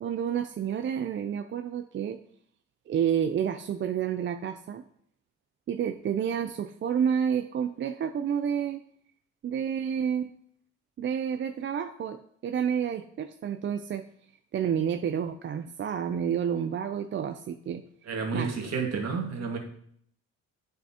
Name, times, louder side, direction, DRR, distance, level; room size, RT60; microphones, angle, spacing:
voice 1, 0.0-2.2 2.9-4.8 5.7-8.8 9.4-10.3 11.0-14.0 14.5-17.8 18.3-18.5, right 8 dB, 40° right, 8 dB, 0.4 m, -29 dB
voice 2, 18.1-19.6, right 5 dB, 60° right, 1 dB, 1.8 m, -30 dB
8.9 x 5.6 x 2.8 m, 0.66 s
cardioid pair, 90°, 30 cm